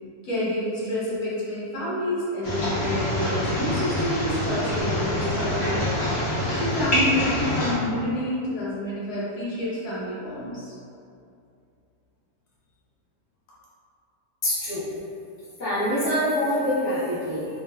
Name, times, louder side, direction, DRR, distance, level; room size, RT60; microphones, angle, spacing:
voice 1, 0.2-6.0 6.5-10.7, left 1 dB, 75° left, -8 dB, 1.2 m, -28 dB
sound 1, 2.4-7.7, left 1 dB, 50° left, 0.9 m, -26 dB
voice 2, 14.4-14.8 15.6-17.5, equal, 20° left, -14 dB, 0.9 m, -25 dB
3.0 x 2.8 x 2.2 m, 2.5 s
omnidirectional pair, 1.7 m